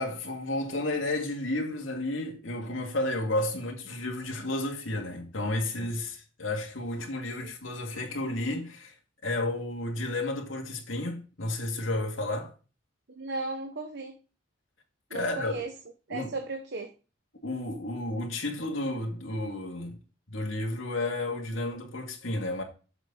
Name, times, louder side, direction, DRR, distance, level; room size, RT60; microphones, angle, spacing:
voice 1, 0.0-8.9 9.2-12.5 15.1-15.5 16.1-16.3 17.4-20.0 20.3-22.6, left 2 dB, 85° left, 2.2 m, -32 dB
voice 2, 13.1-14.2 15.1-15.7 16.1-16.9, right 3 dB, 60° right, 0.9 m, -36 dB
8.1 x 6.6 x 3.9 m
head